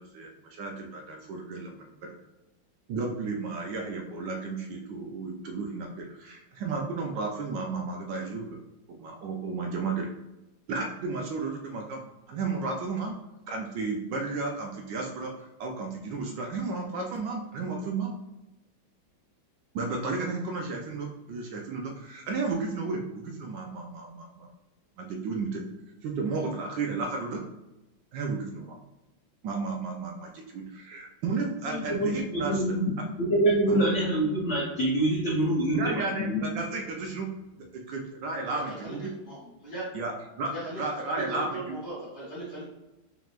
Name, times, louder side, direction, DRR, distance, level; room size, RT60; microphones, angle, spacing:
voice 1, 0.0-2.1 2.9-8.6 8.9-10.1 10.7-12.0 12.3-13.2 13.5-18.1 19.7-24.5 25.0-25.6 26.0-27.4 28.1-28.8 29.4-32.6 33.7-33.8 35.7-37.3 37.7-39.1 39.9-41.6, right 4 dB, 70° right, 1 dB, 1.2 m, -33 dB
voice 2, 31.7-32.9 33.2-36.4, right 1 dB, 75° left, -5 dB, 0.6 m, -26 dB
voice 3, 38.6-39.8 40.5-42.7, right 1 dB, 35° left, -8 dB, 1.6 m, -38 dB
5.2 x 3.0 x 2.4 m, 0.98 s
omnidirectional pair, 2.3 m